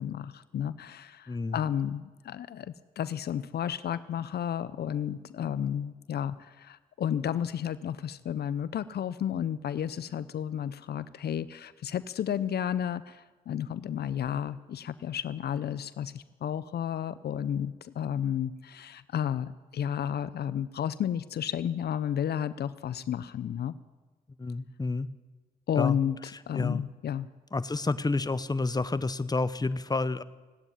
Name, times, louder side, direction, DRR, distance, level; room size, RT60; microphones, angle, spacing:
voice 1, 0.0-23.7 25.7-26.2 26.5-27.3, left 9 dB, 70° left, 16 dB, 0.5 m, -32 dB
voice 2, 1.3-1.6 24.4-25.1 25.8-26.0 26.5-26.8 27.5-30.2, left 3 dB, 25° left, 15 dB, 0.8 m, -29 dB
16.0 x 9.0 x 10.0 m, 1.3 s
cardioid pair, 50°, 17 cm